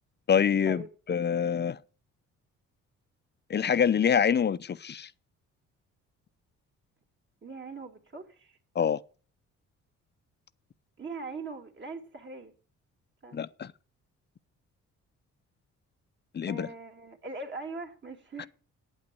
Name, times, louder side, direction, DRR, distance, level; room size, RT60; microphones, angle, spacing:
voice 1, 0.3-1.8 3.5-5.1 8.8-9.0 13.3-13.7 16.3-16.7, left 7 dB, 35° left, 0.6 m, -26 dB
voice 2, 7.4-8.6 11.0-12.5 13.2-13.4 16.5-18.5, right 3 dB, 40° right, 2.7 m, -41 dB
9.0 x 8.7 x 7.7 m
cardioid pair, 90°, 30 cm